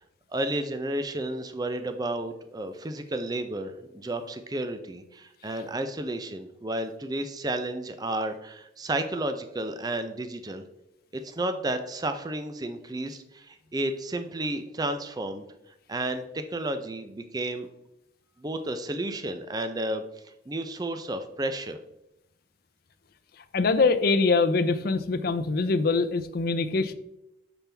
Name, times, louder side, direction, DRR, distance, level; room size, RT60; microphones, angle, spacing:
voice 1, 0.3-10.6 11.1-15.4 15.9-17.7 18.4-20.0 20.5-21.8, right 1 dB, 20° right, 8 dB, 0.5 m, -32 dB
voice 2, 23.5-26.9, left 3 dB, 55° left, 10 dB, 0.5 m, -23 dB
6.9 x 5.9 x 3.4 m, 0.83 s
head